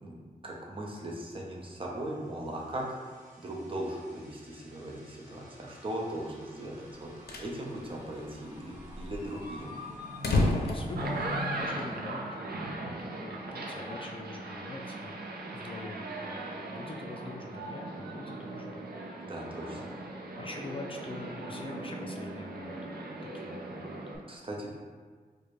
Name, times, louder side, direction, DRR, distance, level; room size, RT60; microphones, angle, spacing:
voice 1, 0.0-3.0 3.4-7.1 7.4-9.7 11.8-11.9 19.3-19.9 24.3-24.7, right 1 dB, 35° right, -2 dB, 0.8 m, -38 dB
sound 1, 2.1-12.8, left 1 dB, 50° right, 1.3 m, -46 dB
sound 2, 6.9-7.6 7.9-8.0 8.2-8.3 8.8-11.8, left 2 dB, 85° left, 0.5 m, -31 dB
voice 2, 9.7-19.3 19.7-20.0 20.4-22.9 23.3-24.3, left 3 dB, 35° left, 1 dB, 0.4 m, -45 dB
sound 3, 10.8-24.2, right 2 dB, 80° right, 0.5 m, -39 dB
4.7 x 2.2 x 3.1 m, 1.5 s
wide cardioid pair, 85°, 16 cm